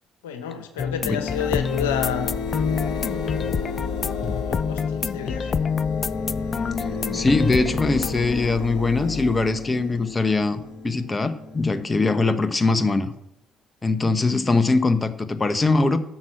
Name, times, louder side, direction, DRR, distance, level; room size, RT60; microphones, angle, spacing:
voice 1, 0.2-2.4 3.3-3.7 4.4-5.6, left 8 dB, 90° left, 7 dB, 1.2 m, -30 dB
sound 1, 0.8-8.1, left 6 dB, 45° left, 0.5 m, -27 dB
sound 2, 1.2-12.8, left 4 dB, 70° left, 1.5 m, -33 dB
voice 2, 7.1-13.1 13.8-16.0, left 3 dB, 25° left, 10 dB, 1.2 m, -22 dB
12.0 x 6.3 x 7.6 m, 0.80 s
hypercardioid pair, 55°, 0 cm